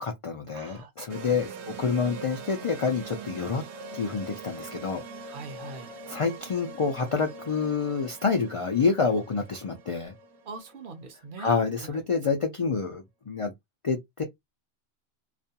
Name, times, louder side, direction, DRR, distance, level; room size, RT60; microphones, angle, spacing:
voice 1, 0.0-3.6 3.9-5.0 6.1-10.1 11.4-13.5 13.8-14.2, left 5 dB, 55° left, 0.3 m, -28 dB
voice 2, 0.5-1.4 1.7-1.8 5.3-5.9 10.5-11.5, right 3 dB, 55° right, 0.7 m, -43 dB
sound 1, 1.1-11.5, right 4 dB, 85° right, 0.9 m, -43 dB
2.4 x 2.2 x 2.7 m
omnidirectional pair, 1.1 m